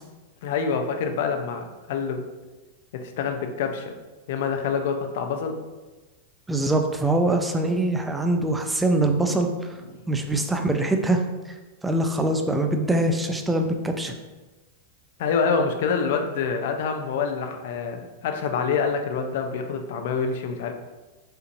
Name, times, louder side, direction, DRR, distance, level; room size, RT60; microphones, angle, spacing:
voice 1, 0.4-2.2 2.9-3.9 4.3-5.6 15.2-20.7, left 5 dB, 65° left, 5 dB, 0.5 m, -26 dB
voice 2, 6.5-9.8 10.1-11.2 11.8-14.1, right 2 dB, 10° right, 5 dB, 0.4 m, -23 dB
4.3 x 2.6 x 2.5 m, 1.2 s
hypercardioid pair, 125°, 0 cm